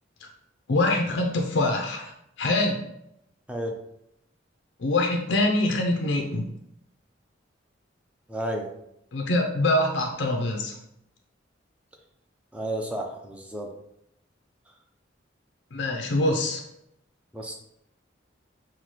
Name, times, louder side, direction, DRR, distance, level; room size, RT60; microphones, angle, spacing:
voice 1, 0.7-2.8 4.8-6.5 9.1-10.8 15.7-16.6, left 2 dB, 70° left, 2 dB, 0.5 m, -24 dB
voice 2, 8.3-8.7 12.5-13.7 17.3-17.5, right 1 dB, 5° right, 1 dB, 0.5 m, -32 dB
5.6 x 2.2 x 3.1 m, 0.78 s
head